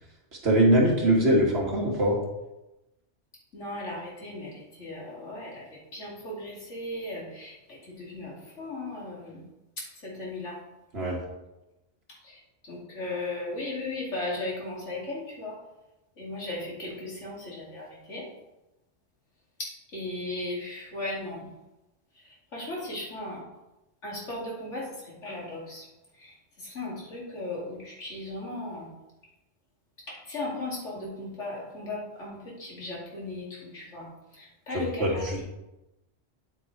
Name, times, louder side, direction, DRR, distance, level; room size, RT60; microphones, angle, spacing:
voice 1, 0.4-2.2 10.9-11.2 34.7-35.4, right 1 dB, 60° right, -2 dB, 2.1 m, -22 dB
voice 2, 3.5-9.4 10.0-10.6 12.2-15.6 16.2-18.3 19.6-21.5 22.1-23.4 24.0-25.9 26.1-28.9 30.1-35.4, left 2 dB, 80° left, -4 dB, 2.8 m, -37 dB
8.7 x 8.1 x 3.2 m, 0.98 s
omnidirectional pair, 1.2 m